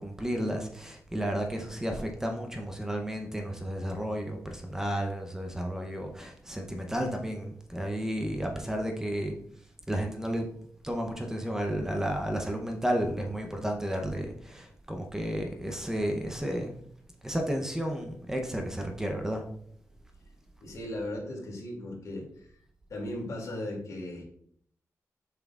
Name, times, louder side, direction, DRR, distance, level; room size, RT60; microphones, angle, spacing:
voice 1, 0.0-9.4 9.9-10.5 10.8-16.7 17.2-19.4, equal, 10° right, 3 dB, 0.7 m, -32 dB
voice 2, 20.6-22.5 22.9-24.2, left 1 dB, 70° left, -1 dB, 2.4 m, -37 dB
7.2 x 5.8 x 2.4 m, 0.64 s
wide cardioid pair, 165°, 6 cm